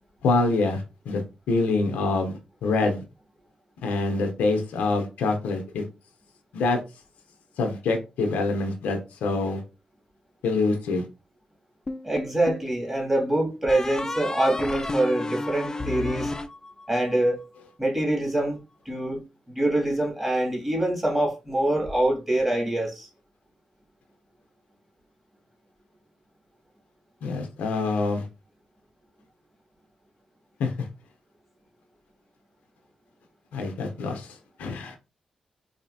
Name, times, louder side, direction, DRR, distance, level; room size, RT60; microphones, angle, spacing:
voice 1, 0.2-2.3 2.6-3.0 3.8-5.8 6.5-6.8 7.6-9.6 10.4-11.1 27.2-28.3 30.6-30.9 33.5-35.0, left 3 dB, 85° left, 0.7 m, -25 dB
sound 1, 11.9-12.7 13.7-17.2, left 2 dB, 25° left, 0.5 m, -32 dB
voice 2, 12.0-16.3 16.9-17.4 17.8-18.6 18.9-19.2 19.5-23.1, right 1 dB, 15° right, 2.3 m, -25 dB
4.1 x 2.7 x 2.7 m
supercardioid pair, 50°, 2 cm